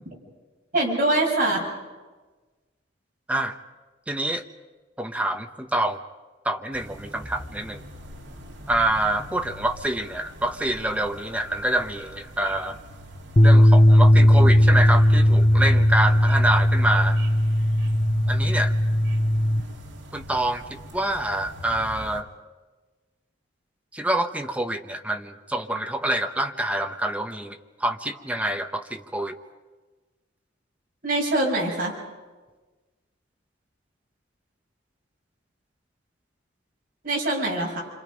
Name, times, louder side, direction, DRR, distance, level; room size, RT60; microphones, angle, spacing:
voice 1, 0.7-1.6 31.0-31.9 37.0-37.8, right 2 dB, 45° right, -2 dB, 6.2 m, -23 dB
voice 2, 3.3-3.6 4.1-4.4 5.0-6.0 6.4-7.8 8.7-12.8 13.4-17.2 18.3-18.7 20.1-22.3 23.9-29.4, right 1 dB, 5° right, 5 dB, 1.0 m, -26 dB
sound 1, 6.7-22.2, left 1 dB, 60° right, 2.5 m, -40 dB
sound 2, 13.4-19.6, equal, 30° left, 0.8 m, -17 dB
28.5 x 26.0 x 5.3 m, 1.3 s
head